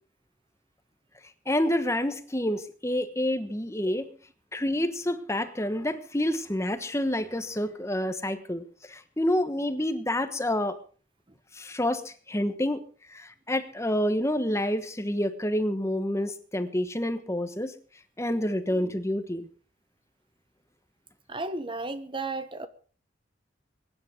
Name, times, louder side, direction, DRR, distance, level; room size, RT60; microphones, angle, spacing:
voice 1, 1.5-4.1 4.5-10.8 11.5-12.8 13.1-17.7 18.2-19.5, left 1 dB, 15° left, 1.3 m, -28 dB
voice 2, 21.3-22.7, right 3 dB, 25° right, 1.0 m, -33 dB
23.0 x 10.5 x 5.3 m
head